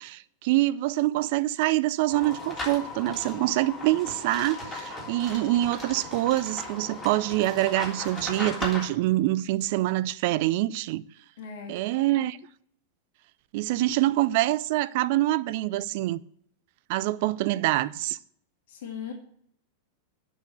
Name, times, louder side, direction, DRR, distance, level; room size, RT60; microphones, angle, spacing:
voice 1, 0.0-11.0 11.7-12.4 13.5-16.2 16.9-18.2, right 16 dB, 50° right, 0.4 m, -25 dB
sound 1, 2.1-8.9, left 2 dB, 15° left, 3.4 m, -37 dB
voice 2, 11.4-11.8 18.7-19.1, left 7 dB, 55° left, 2.0 m, -38 dB
8.2 x 6.3 x 7.9 m
figure-of-eight pair, 90°, 0 cm